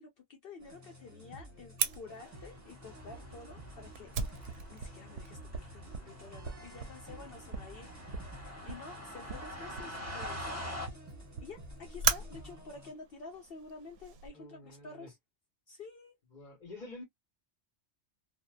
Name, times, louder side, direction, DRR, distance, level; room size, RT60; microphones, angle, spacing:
voice 1, 0.0-7.9 8.6-10.6 11.4-15.2 15.7-16.2, left 4 dB, 60° left, 0.8 m, -50 dB
sound 1, 0.6-12.9, right 1 dB, 20° right, 0.7 m, -52 dB
Fire, 1.8-14.3, right 7 dB, 70° right, 0.8 m, -39 dB
sound 2, 2.2-10.9, left 1 dB, 15° left, 1.3 m, -46 dB
voice 2, 14.3-15.1 16.3-17.0, left 2 dB, 45° left, 1.1 m, -48 dB
2.7 x 2.1 x 2.2 m
omnidirectional pair, 1.2 m